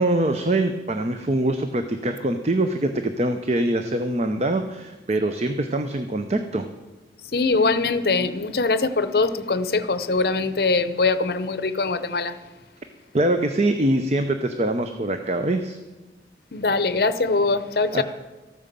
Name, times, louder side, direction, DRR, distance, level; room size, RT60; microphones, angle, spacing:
voice 1, 0.0-6.7 13.1-15.8 17.9-18.0, right 1 dB, 35° right, 0.6 m, -23 dB
voice 2, 7.3-12.4 16.5-18.0, left 3 dB, 60° left, 0.7 m, -22 dB
13.5 x 8.9 x 6.8 m
head